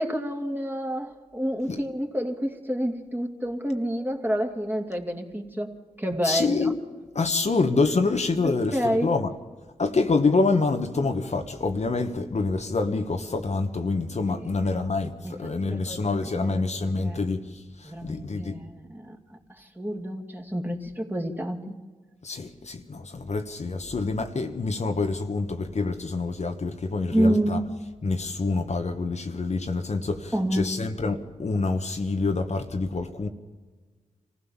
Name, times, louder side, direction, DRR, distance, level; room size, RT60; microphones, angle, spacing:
voice 1, 0.0-5.7 6.0-6.7 8.4-9.1 14.4-14.9 15.2-17.3 17.8-21.8 27.1-27.6 30.3-30.7, equal, 15° right, 2.6 m, -29 dB
voice 2, 6.2-6.8 7.1-9.3 9.8-17.4 17.8-18.6 22.2-27.6 28.0-33.3, left 3 dB, 55° left, 1.5 m, -26 dB
25.0 x 15.5 x 7.3 m
cardioid pair, 45°, 14 cm